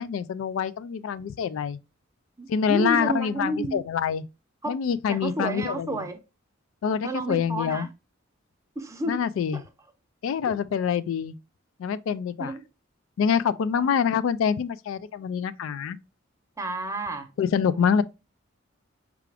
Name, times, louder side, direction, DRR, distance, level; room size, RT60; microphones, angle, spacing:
voice 1, 0.0-1.8 2.5-4.3 4.7-6.1 6.8-7.9 9.1-9.6 10.2-11.4 11.8-12.5 13.2-16.0 17.4-18.0, left 7 dB, 80° left, 0.3 m, -26 dB
voice 2, 2.4-3.8 4.6-4.8 5.1-6.2 7.0-7.9 8.8-9.2 9.5-9.6 12.4-12.6 13.7-13.9 16.6-17.3 17.7-17.8, right 2 dB, 15° right, 0.6 m, -31 dB
4.7 x 2.4 x 3.2 m
head